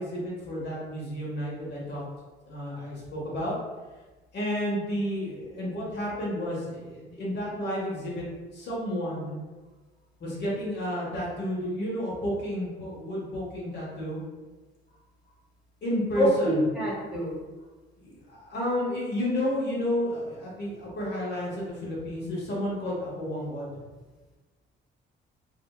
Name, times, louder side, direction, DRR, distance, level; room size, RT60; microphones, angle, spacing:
voice 1, 0.0-2.0 2.4-3.5 4.3-8.2 8.5-9.3 10.2-14.2 15.8-16.6 18.0-23.8, equal, 60° left, -5 dB, 0.9 m, -31 dB
voice 2, 16.2-17.3, equal, 5° right, -7 dB, 1.0 m, -25 dB
2.7 x 2.1 x 2.2 m, 1.3 s
cardioid pair, 90°, 20 cm